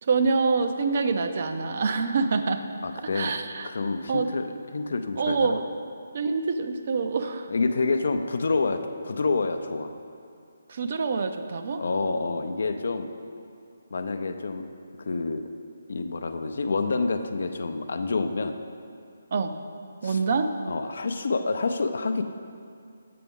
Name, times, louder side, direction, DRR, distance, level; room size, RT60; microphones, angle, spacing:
voice 1, 0.0-2.6 3.1-3.7 4.1-4.3 5.2-5.6 6.1-7.5 10.7-11.8 19.3-19.5 20.0-20.5, right 4 dB, 50° right, 7 dB, 0.4 m, -25 dB
voice 2, 2.8-3.4 3.6-4.4 4.7-5.6 7.5-9.9 11.8-13.1 13.9-14.6 15.1-15.4 15.9-18.6 20.0-20.2 20.7-22.2, left 3 dB, 65° left, 8 dB, 0.4 m, -28 dB
7.6 x 5.9 x 3.6 m, 2.4 s
figure-of-eight pair, 150°, 0 cm